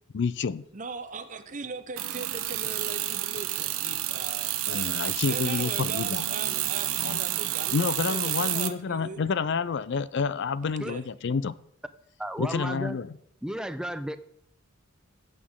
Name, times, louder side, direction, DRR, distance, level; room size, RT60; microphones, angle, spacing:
voice 1, 0.1-0.6 4.7-6.3 7.0-7.2 7.7-11.5 12.4-13.1, left 5 dB, 55° left, 0.4 m, -29 dB
voice 2, 0.7-4.6 5.2-9.2 10.8-11.0, right 4 dB, 35° right, 0.7 m, -39 dB
sound 1, 2.0-8.7, right 13 dB, 80° right, 0.8 m, -30 dB
voice 3, 12.2-13.0 13.4-14.2, equal, 5° right, 0.5 m, -33 dB
14.5 x 8.3 x 3.7 m
head